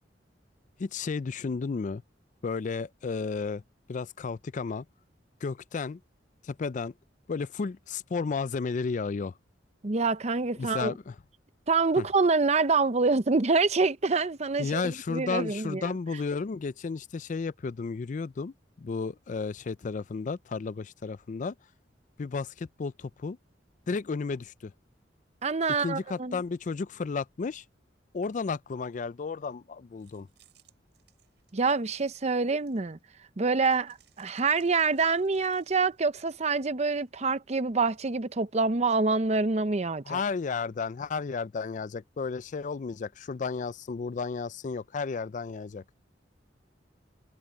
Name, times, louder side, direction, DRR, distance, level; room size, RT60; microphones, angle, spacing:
voice 1, 0.8-2.0 2.4-3.6 3.9-4.9 5.4-6.0 6.4-6.9 7.3-9.3 10.6-11.1 12.0-12.1 14.6-21.5 22.2-23.4 23.9-24.7 25.8-27.6 28.1-30.3 40.1-45.8, left 4 dB, 45° left, 0.4 m, -33 dB
voice 2, 9.8-11.0 11.7-15.9 25.4-26.4 31.5-33.0 33.4-40.2, right 4 dB, 40° right, 0.7 m, -26 dB
sound 1, 30.0-33.1 33.6-36.0, right 12 dB, 70° right, 6.5 m, -65 dB
open air
head